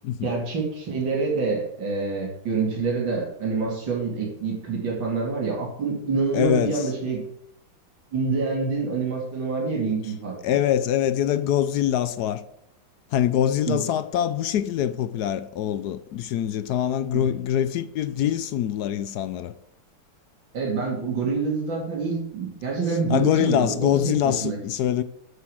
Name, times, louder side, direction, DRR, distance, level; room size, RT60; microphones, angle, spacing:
voice 1, 0.2-7.2 8.1-10.3 13.7-13.8 20.5-24.6, right 4 dB, 70° right, 3.3 m, -26 dB
voice 2, 6.3-6.9 10.4-12.4 13.1-19.5 23.1-25.0, left 10 dB, 70° left, 1.0 m, -24 dB
7.7 x 7.0 x 7.6 m
omnidirectional pair, 2.1 m